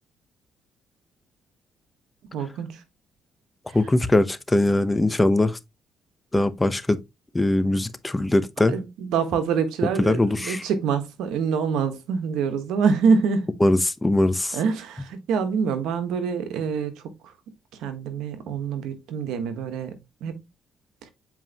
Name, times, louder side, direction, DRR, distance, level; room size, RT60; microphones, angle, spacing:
voice 1, 2.3-2.8 3.7-3.8 8.7-13.5 14.5-17.0 17.8-20.4 21.0-21.1, right 6 dB, 90° right, 1.3 m, -25 dB
voice 2, 3.7-5.6 6.3-7.0 7.3-8.7 10.0-10.6 13.6-14.6, left 2 dB, 15° left, 0.9 m, -21 dB
7.6 x 4.6 x 2.9 m
cardioid pair, 90°, 0 cm